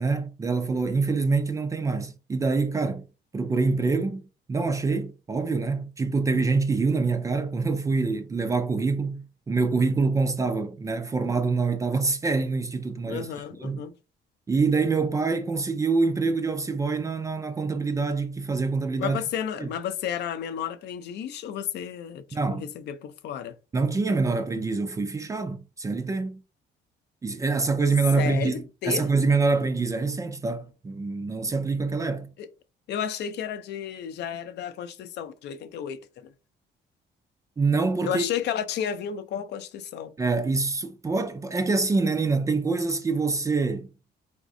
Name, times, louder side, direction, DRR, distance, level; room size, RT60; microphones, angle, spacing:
voice 1, 0.0-3.0 3.3-4.2 4.5-13.3 13.6-13.8 14.5-19.2 19.6-19.7 22.3-22.6 23.7-26.4 27.2-32.3 37.6-38.3 40.2-43.9, right 4 dB, 15° right, 0.3 m, -25 dB
voice 2, 13.1-13.9 19.0-23.5 28.2-29.1 32.4-32.5 32.9-36.3 38.0-40.1, left 9 dB, 65° left, 0.5 m, -32 dB
4.1 x 3.5 x 2.6 m
cardioid pair, 170°, 19 cm